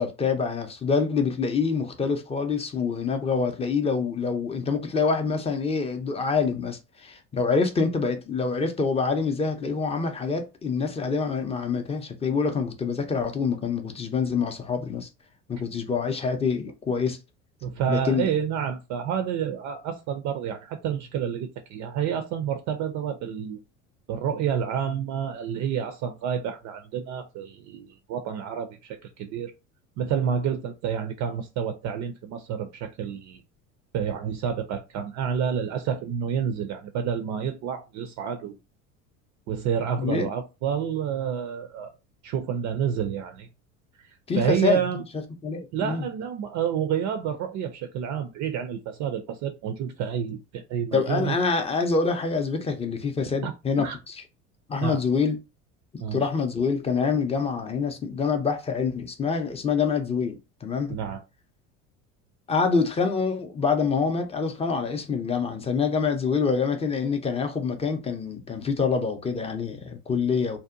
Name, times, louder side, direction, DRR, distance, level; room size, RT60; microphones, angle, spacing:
voice 1, 0.0-15.1 15.5-17.2 17.9-18.3 40.0-40.3 44.3-44.8 45.4-46.1 50.9-54.2 54.7-55.4 55.9-61.0 62.5-70.6, left 5 dB, 15° left, 0.4 m, -26 dB
voice 2, 17.6-23.6 24.1-29.5 30.0-33.4 33.9-38.5 39.5-41.9 42.2-43.5 44.3-45.0 45.7-51.4 53.4-53.5 53.8-54.0 54.8-55.0 56.0-56.2 60.9-61.2, right 8 dB, 45° right, 0.4 m, -29 dB
2.7 x 2.1 x 2.4 m
hypercardioid pair, 75°, 42 cm